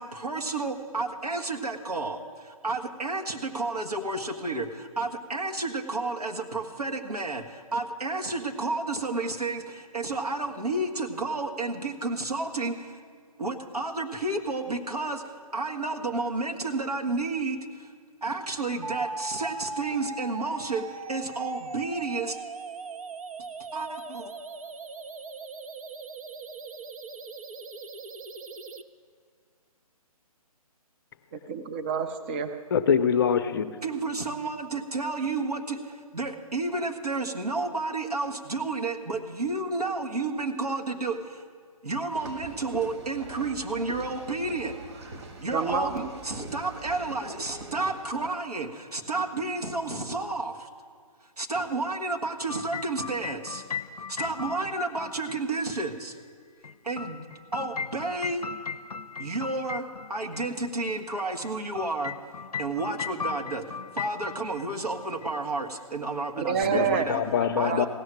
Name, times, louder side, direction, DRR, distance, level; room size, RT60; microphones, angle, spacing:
voice 1, 0.0-13.0 13.4-15.2 15.5-17.9 18.2-22.4 23.7-24.3 33.8-41.4 41.8-44.8 45.4-50.7 51.4-53.6 54.1-56.2 56.8-57.2 57.5-58.5 59.2-62.1 62.6-63.6 63.9-67.2 67.6-67.9, right 3 dB, 85° right, 3 dB, 1.6 m, -31 dB
sound 1, 18.8-28.8, right 4 dB, 65° right, 0.7 m, -39 dB
voice 2, 31.3-32.5 45.5-46.1 66.4-67.1 67.6-67.9, right 6 dB, 15° right, 7 dB, 0.3 m, -28 dB
voice 3, 32.7-33.8 66.6-67.9, left 7 dB, 35° left, 10 dB, 0.6 m, -24 dB
sound 2, 42.2-48.3, right 2 dB, 45° right, 1.5 m, -43 dB
sound 3, 52.5-55.4 56.6-60.4 61.4-64.7 64.9-65.3 66.6-66.7, left 6 dB, 85° left, 0.5 m, -37 dB
16.0 x 6.4 x 9.2 m, 2.1 s
figure-of-eight pair, 140°, 19 cm